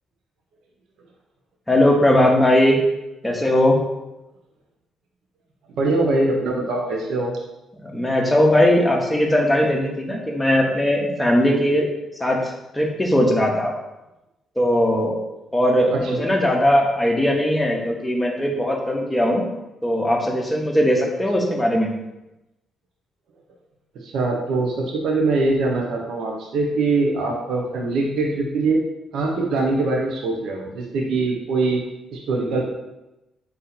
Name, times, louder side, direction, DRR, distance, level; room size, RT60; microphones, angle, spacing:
voice 1, 1.7-2.8 3.2-3.8 7.8-11.9 12.2-13.7 14.6-15.2 15.5-19.5 19.8-21.9, left 1 dB, 10° left, -1 dB, 0.9 m, -19 dB
voice 2, 5.8-7.3 15.9-16.2 24.0-28.8 29.1-31.8 32.1-32.6, right 3 dB, 75° right, 0 dB, 0.7 m, -22 dB
4.2 x 2.7 x 3.9 m, 0.96 s
cardioid pair, 90°, 0 cm